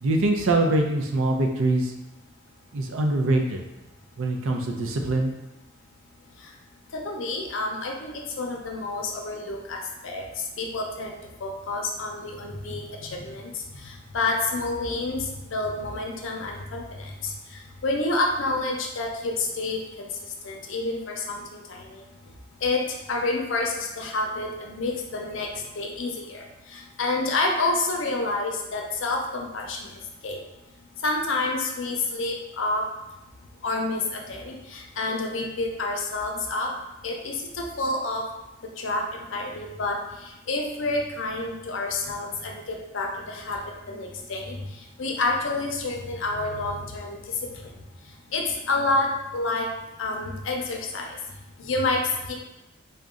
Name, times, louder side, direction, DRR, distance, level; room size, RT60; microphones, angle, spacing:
voice 1, 0.0-1.9 2.7-3.6 4.2-5.3, right 2 dB, 80° right, 3 dB, 0.5 m, -23 dB
voice 2, 6.9-11.1 11.4-20.1 20.4-22.0 22.6-29.9 30.2-30.4 31.0-32.8 33.6-36.7 37.0-38.3 38.8-43.6 43.9-47.7 48.3-49.7 50.0-51.2 51.6-52.4, left 2 dB, 70° left, 1 dB, 0.5 m, -29 dB
3.8 x 2.2 x 3.6 m, 0.96 s
head